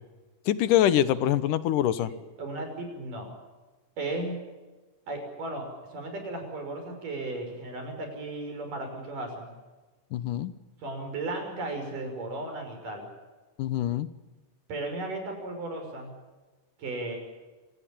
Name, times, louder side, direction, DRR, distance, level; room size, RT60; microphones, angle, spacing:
voice 1, 0.5-2.1 10.1-10.5 13.6-14.1, left 11 dB, 80° left, 14 dB, 2.7 m, -24 dB
voice 2, 2.0-3.3 4.0-4.4 5.1-9.5 10.8-13.1 14.7-16.1 16.8-17.2, right 2 dB, 80° right, 4 dB, 7.4 m, -35 dB
26.5 x 18.0 x 8.5 m, 1.2 s
omnidirectional pair, 3.7 m